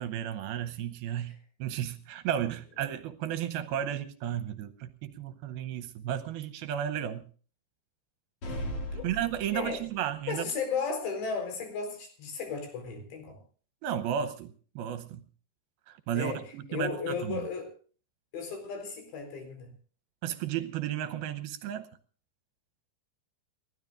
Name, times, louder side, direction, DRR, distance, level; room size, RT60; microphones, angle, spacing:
voice 1, 0.0-7.3 9.0-10.5 13.8-15.3 15.9-17.5 20.2-21.9, right 10 dB, 75° right, 2.5 m, -33 dB
sound 1, 8.4-10.1, equal, 35° left, 2.8 m, -37 dB
voice 2, 8.5-9.1 9.5-9.8 10.3-13.4 16.1-16.4 16.7-17.7 18.3-19.7, left 5 dB, 85° left, 6.4 m, -35 dB
29.5 x 13.0 x 2.5 m
omnidirectional pair, 4.9 m